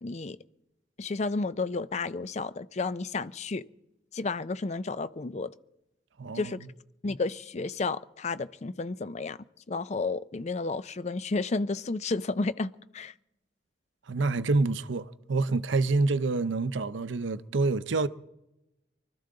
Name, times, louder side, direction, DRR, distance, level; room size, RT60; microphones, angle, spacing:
voice 1, 0.0-0.4 1.0-3.6 4.1-5.5 6.3-6.6 7.0-9.4 9.7-12.7 12.9-13.1, left 3 dB, 35° left, 0.4 m, -31 dB
voice 2, 6.2-6.5 14.1-18.1, right 3 dB, 80° right, 0.6 m, -27 dB
24.5 x 13.5 x 3.8 m
head